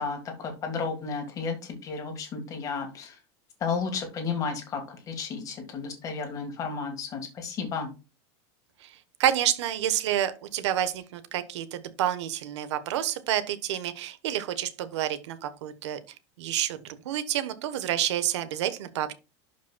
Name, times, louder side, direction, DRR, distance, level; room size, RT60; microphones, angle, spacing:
voice 1, 0.0-3.1 3.6-7.9, left 5 dB, 20° left, 5 dB, 1.7 m, -33 dB
voice 2, 9.2-16.0 16.4-19.1, right 11 dB, 75° right, 12 dB, 1.1 m, -29 dB
11.5 x 5.2 x 2.2 m, 0.29 s
supercardioid pair, 170°, 15 cm